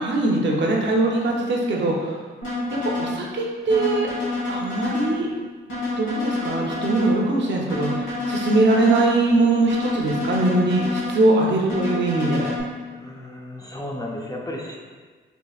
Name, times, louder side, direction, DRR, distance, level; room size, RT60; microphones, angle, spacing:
voice 1, 0.0-2.2 2.8-4.1 4.5-5.3 6.0-12.5, right 2 dB, 65° right, -1 dB, 0.7 m, -21 dB
sound 1, 2.4-3.2 3.7-5.2 5.7-7.2 7.7-9.2 9.7-11.2 11.7-12.6, left 2 dB, 75° left, 1.4 m, -28 dB
voice 2, 12.9-14.8, left 1 dB, 20° left, -1 dB, 0.5 m, -33 dB
4.5 x 2.7 x 2.3 m, 1.4 s
cardioid pair, 85°, 20 cm